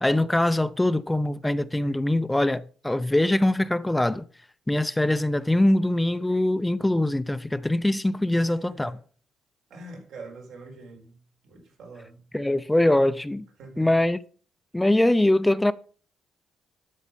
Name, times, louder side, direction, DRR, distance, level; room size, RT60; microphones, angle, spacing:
voice 1, 0.0-4.2 4.7-8.9 12.3-13.4 13.8-14.2 14.7-15.7, left 1 dB, 10° left, 0.6 m, -23 dB
voice 2, 8.2-9.0 9.7-11.2 11.4-12.2 13.6-13.9, right 2 dB, 80° right, 4.3 m, -44 dB
12.5 x 6.4 x 5.3 m
cardioid pair, 90°, 0 cm